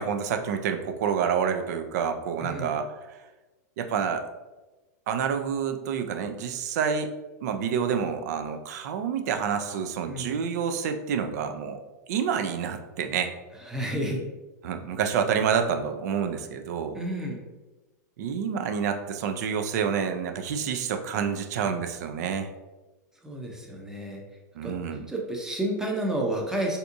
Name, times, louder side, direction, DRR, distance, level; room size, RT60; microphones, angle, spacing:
voice 1, 0.0-3.2 3.8-4.3 5.1-7.1 7.4-11.8 12.1-13.3 14.6-17.0 18.2-22.5 24.5-25.1, right 7 dB, 65° right, 6 dB, 0.4 m, -28 dB
voice 2, 2.4-2.7 10.1-10.3 13.7-14.2 17.0-17.4 23.2-24.2 24.6-24.7 25.1-26.8, right 1 dB, 5° right, 0 dB, 0.6 m, -30 dB
3.4 x 2.7 x 2.5 m, 1.1 s
hypercardioid pair, 125°, 10 cm